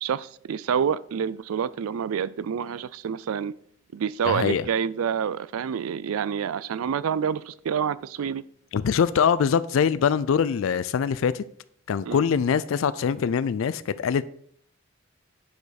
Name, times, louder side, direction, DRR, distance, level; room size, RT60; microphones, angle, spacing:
voice 1, 0.0-3.5 3.9-8.4 12.1-12.2, right 7 dB, 85° right, 18 dB, 0.4 m, -28 dB
voice 2, 4.2-4.6 8.7-11.4 11.9-14.2, left 7 dB, 70° left, 17 dB, 0.3 m, -23 dB
9.1 x 5.0 x 4.1 m, 0.65 s
head